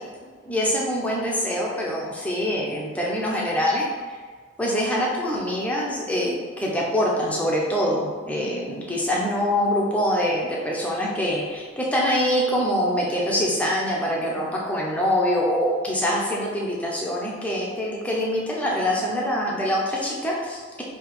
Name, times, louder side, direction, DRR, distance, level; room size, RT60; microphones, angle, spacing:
voice 1, 0.2-3.9 4.6-20.8, equal, 5° left, -4 dB, 0.7 m, -24 dB
3.6 x 2.9 x 4.8 m, 1.5 s
head